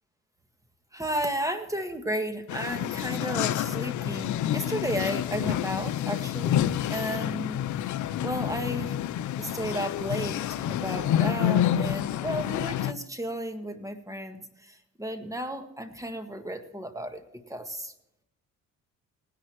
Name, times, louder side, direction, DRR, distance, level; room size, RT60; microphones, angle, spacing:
voice 1, 0.9-6.6 6.9-7.6 8.2-8.9 9.4-17.2 17.5-17.9, equal, 10° right, 7 dB, 1.6 m, -33 dB
sound 1, 2.5-12.9, left 11 dB, 70° left, 0.6 m, -28 dB
19.0 x 11.0 x 3.0 m, 0.84 s
cardioid pair, 90°, 30 cm